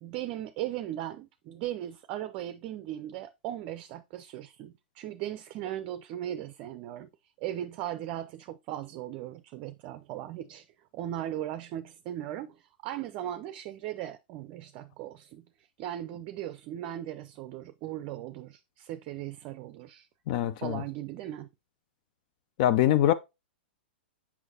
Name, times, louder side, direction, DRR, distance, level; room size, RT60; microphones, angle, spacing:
voice 1, 0.0-7.1 7.4-10.7 10.9-15.4 15.8-20.1 20.6-21.5, right 12 dB, 40° right, 0.5 m, -38 dB
voice 2, 20.3-20.8 22.6-23.1, left 12 dB, 50° left, 0.5 m, -23 dB
6.3 x 5.7 x 2.8 m
figure-of-eight pair, 105°, 6 cm